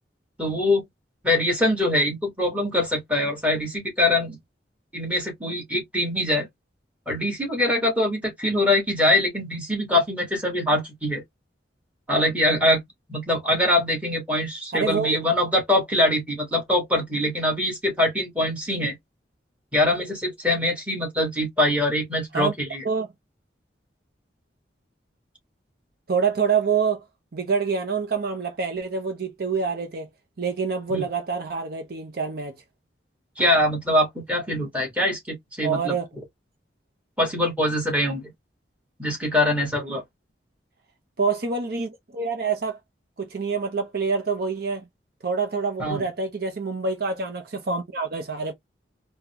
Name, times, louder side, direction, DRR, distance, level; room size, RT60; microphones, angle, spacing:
voice 1, 0.4-0.8 1.2-4.4 4.9-6.5 7.1-11.2 12.1-12.8 13.1-19.0 19.7-22.8 30.9-31.0 33.4-36.0 37.2-38.3 39.0-40.0 45.8-46.1, left 1 dB, 10° right, 1.5 m, -23 dB
voice 2, 14.7-15.2 22.3-22.5 22.8-23.1 26.1-27.0 27.3-30.1 30.4-32.6 35.6-36.1 41.2-42.8 43.2-44.9 45.2-48.5, right 5 dB, 55° right, 0.6 m, -26 dB
3.7 x 2.2 x 2.8 m
head